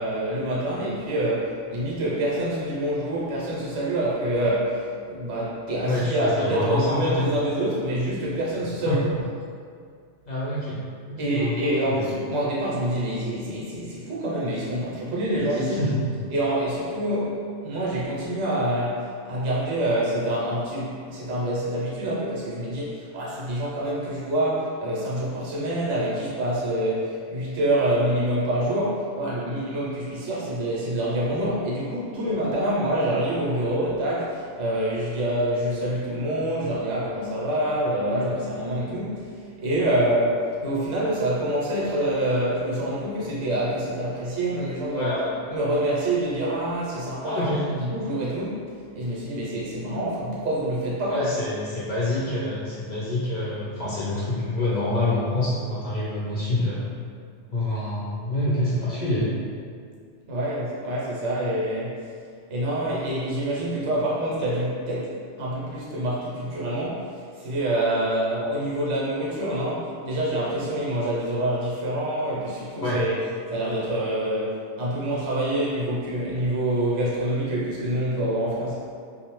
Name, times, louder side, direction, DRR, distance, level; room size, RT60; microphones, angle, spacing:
voice 1, 0.0-9.0 11.2-15.8 16.3-45.1 45.5-51.3 60.3-62.0 62.5-73.2 73.5-78.8, right 1 dB, 75° right, -6 dB, 1.0 m, -26 dB
voice 2, 5.9-7.3 8.9-9.1 10.3-11.6 11.9-12.0 15.4-16.2 44.9-45.4 47.2-47.6 51.1-56.9 57.5-59.3 72.8-73.0, left 1 dB, 55° left, -7 dB, 0.5 m, -26 dB
2.6 x 2.0 x 3.0 m, 2.2 s
omnidirectional pair, 1.2 m